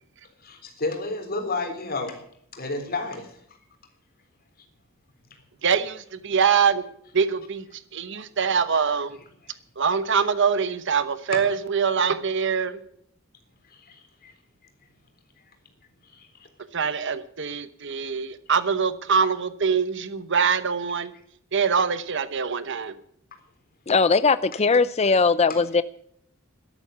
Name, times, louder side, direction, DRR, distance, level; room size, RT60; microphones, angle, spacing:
voice 1, 0.4-2.2 2.5-3.4 11.3-11.5 13.7-14.3 16.0-16.5 17.5-17.6 21.7-21.8 25.5-25.6, left 3 dB, 45° left, 3.8 m, -32 dB
voice 2, 5.6-6.8 7.1-7.6 7.9-9.2 9.8-12.8 16.7-21.1 21.5-22.9, right 6 dB, 60° right, 1.0 m, -24 dB
voice 3, 23.9-25.8, left 4 dB, 30° left, 0.5 m, -19 dB
13.5 x 12.5 x 7.0 m
head